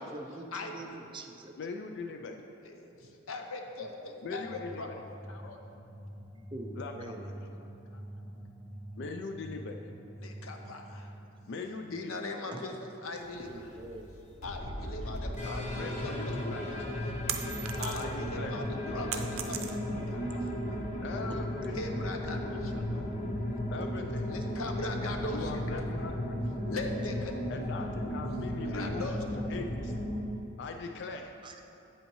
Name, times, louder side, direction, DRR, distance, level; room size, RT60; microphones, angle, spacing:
voice 1, 0.0-1.5 3.8-4.3 6.5-7.3 12.5-12.7 13.4-14.1 20.4-20.6 21.3-21.4 31.4-31.6, right 2 dB, 25° right, 4 dB, 0.4 m, -45 dB
voice 2, 1.6-2.5 4.2-5.0 6.8-7.3 9.0-9.8 11.5-12.2 15.4-16.9 17.9-18.6 20.7-21.9 23.7-24.3 25.3-26.4 27.5-29.9 30.6-31.3, left 4 dB, 55° left, 4 dB, 0.3 m, -41 dB
voice 3, 2.6-4.9 5.3-5.6 7.9-8.0 10.2-11.1 11.9-13.5 14.4-16.4 16.7-16.8 17.8-20.4 21.7-23.1 24.2-25.8 26.1-26.2 26.7-27.7 28.6-29.2, left 2 dB, 90° left, 4 dB, 0.8 m, -40 dB
sound 1, 4.2-11.6, equal, 5° left, 1.1 m, -46 dB
sound 2, 13.2-30.2, equal, 35° left, 0.8 m, -35 dB
sound 3, 16.5-18.3 18.6-20.1, right 9 dB, 80° right, 0.5 m, -37 dB
8.6 x 8.0 x 3.0 m, 2.8 s
head